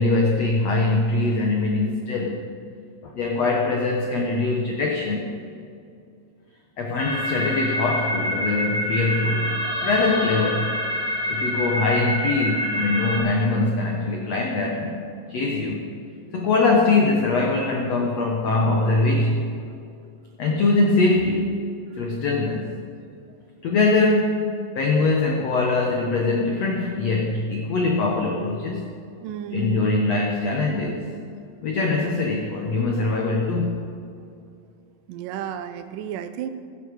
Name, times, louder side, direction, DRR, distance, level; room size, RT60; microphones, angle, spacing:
voice 1, 0.0-2.4 3.0-5.3 6.8-9.6 9.8-10.7 11.3-15.0 15.3-15.8 16.3-19.5 20.4-21.6 22.0-22.8 23.6-28.9 29.5-31.1 31.6-33.9, left 3 dB, 85° left, 1 dB, 1.4 m, -22 dB
sound 1, 7.0-13.2, left 1 dB, 15° left, 3.5 m, -26 dB
voice 2, 29.2-29.9 35.1-36.5, right 9 dB, 85° right, 9 dB, 1.9 m, -32 dB
16.5 x 14.0 x 4.8 m, 2.4 s
omnidirectional pair, 4.9 m